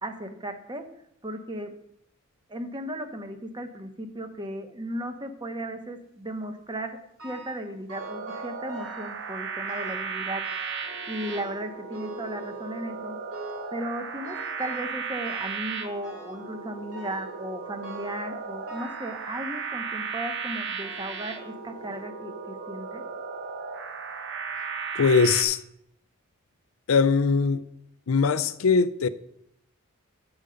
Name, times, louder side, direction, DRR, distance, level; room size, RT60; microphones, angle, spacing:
voice 1, 0.0-0.8 1.2-1.7 2.5-10.7 11.1-13.2 13.7-23.0, right 1 dB, 20° right, 0.9 m, -36 dB
sound 1, 7.2-7.6 7.9-9.2 9.7-10.1 10.4-10.9 11.2-12.9 13.3-13.8 14.2-14.9 15.2-15.7 16.0-16.4 16.9-17.4 17.8-18.3 18.7-19.7 20.4-20.5 21.3-21.4 21.8-21.9, right 2 dB, 80° right, 2.4 m, -45 dB
sound 2, 8.0-25.4, right 5 dB, 60° right, 1.0 m, -35 dB
voice 2, 24.9-25.6 26.9-27.6 28.1-29.1, left 5 dB, 70° left, 0.5 m, -21 dB
8.1 x 6.7 x 5.0 m
head